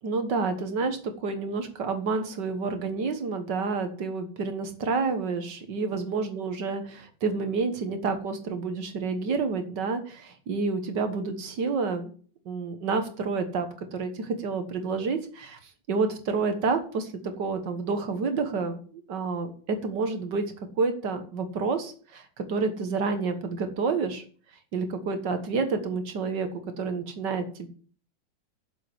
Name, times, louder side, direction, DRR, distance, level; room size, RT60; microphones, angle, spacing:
voice 1, 0.0-12.1 12.5-15.6 15.9-17.1 17.4-18.8 19.1-24.2 24.7-26.5 26.8-27.7, right 4 dB, 70° right, 7 dB, 2.0 m, -29 dB
7.5 x 7.1 x 8.0 m, 0.43 s
omnidirectional pair, 1.9 m